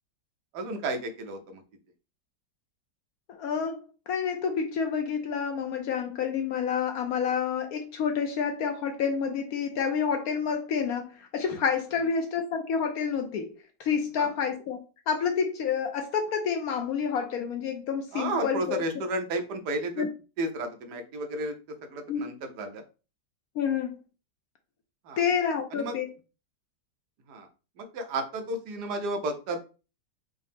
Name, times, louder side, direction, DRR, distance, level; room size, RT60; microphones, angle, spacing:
voice 1, 0.5-1.6 12.0-12.1 14.2-14.3 18.1-20.1 20.4-21.5 21.8-22.8 25.0-25.2 25.7-26.0 27.3-27.5 27.8-29.6, right 2 dB, 70° right, 1.2 m, -32 dB
voice 2, 3.3-14.8 15.1-18.8 20.0-20.1 22.1-22.2 23.6-24.0 25.2-26.1, left 6 dB, 70° left, 0.9 m, -29 dB
5.4 x 2.0 x 3.4 m
omnidirectional pair, 1.9 m